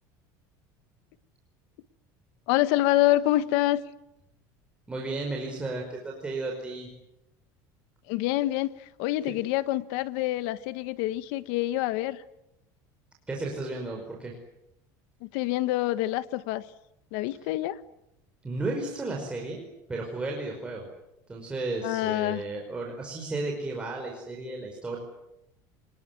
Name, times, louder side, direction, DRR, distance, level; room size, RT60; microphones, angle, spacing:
voice 1, 2.5-3.8 8.1-12.2 15.2-16.6 17.1-17.8 21.8-22.4, left 15 dB, 75° left, 1.5 m, -26 dB
voice 2, 4.9-6.9 13.3-14.3 18.4-19.6 19.9-20.9 21.3-25.0, right 2 dB, 10° right, 5.0 m, -33 dB
27.0 x 20.5 x 9.5 m
cardioid pair, 150°, 9 cm